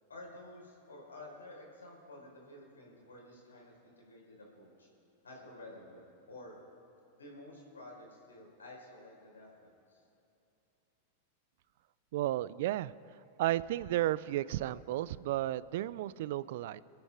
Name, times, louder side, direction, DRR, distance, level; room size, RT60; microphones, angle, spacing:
voice 1, 0.1-4.9 5.2-6.6 7.1-10.0, left 1 dB, 85° left, -1 dB, 4.7 m, -51 dB
voice 2, 12.1-12.9 13.4-16.8, right 14 dB, 60° right, 19 dB, 0.4 m, -33 dB
27.5 x 9.3 x 4.9 m, 2.8 s
hypercardioid pair, 95°, 0 cm